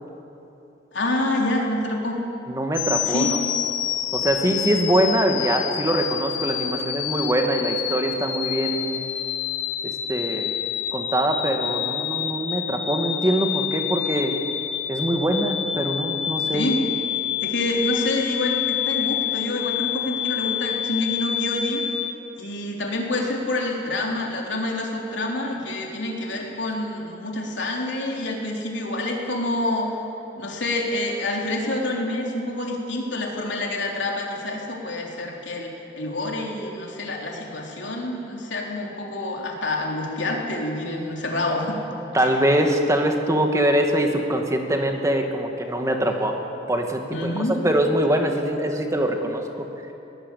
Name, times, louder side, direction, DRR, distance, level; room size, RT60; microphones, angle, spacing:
voice 1, 0.9-2.2 3.1-3.3 16.5-16.8 17.4-21.8 22.4-29.9 30.4-41.8 42.2-42.3 47.1-47.6, left 1 dB, 70° left, 0 dB, 3.8 m, -27 dB
voice 2, 2.5-3.4 4.1-9.0 9.8-10.5 10.9-14.3 14.9-16.7 42.1-46.4 46.7-47.3 47.6-49.7, right 1 dB, 15° right, 3 dB, 2.1 m, -23 dB
sound 1, 2.7-22.1, left 10 dB, 85° left, 1.5 m, -28 dB
22.0 x 18.5 x 8.5 m, 2.9 s
head